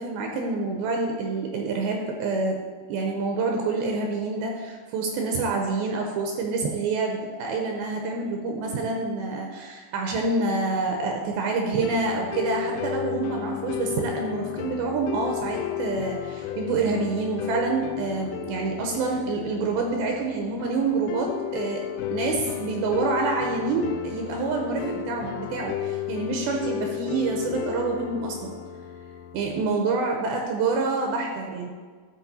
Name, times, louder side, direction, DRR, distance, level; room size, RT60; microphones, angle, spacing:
voice 1, 0.0-2.6 2.9-21.8 22.1-28.5 29.3-31.7, right 3 dB, 80° right, 2 dB, 2.6 m, -27 dB
sound 1, 11.8-29.8, left 11 dB, 80° left, 2.2 m, -33 dB
12.0 x 5.3 x 4.2 m, 1.5 s
omnidirectional pair, 4.6 m